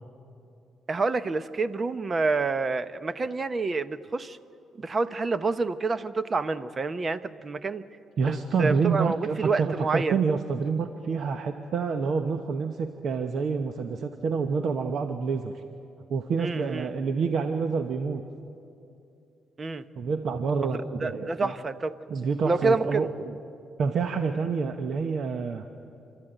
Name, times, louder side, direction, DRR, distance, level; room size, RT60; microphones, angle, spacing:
voice 1, 0.9-4.4 4.7-7.8 8.3-10.2 16.4-16.9 19.6-19.8 20.6-21.9 22.4-23.1, right 3 dB, 35° right, 14 dB, 0.8 m, -28 dB
voice 2, 8.2-15.6 16.1-18.2 20.0-21.5 22.1-23.3 23.8-25.7, right 5 dB, 60° right, 7 dB, 1.0 m, -28 dB
29.0 x 13.0 x 9.1 m, 2.6 s
cardioid pair, 90°, 0 cm